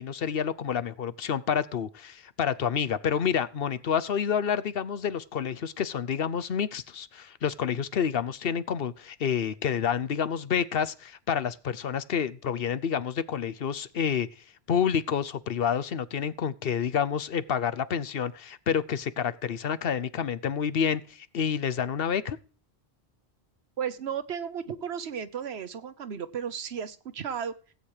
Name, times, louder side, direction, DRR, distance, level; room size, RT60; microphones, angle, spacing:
voice 1, 0.0-14.3 14.7-22.4, left 7 dB, 65° left, 14 dB, 1.0 m, -29 dB
voice 2, 23.8-27.5, right 7 dB, 80° right, 13 dB, 1.2 m, -34 dB
16.0 x 8.7 x 4.9 m, 0.40 s
omnidirectional pair, 1.1 m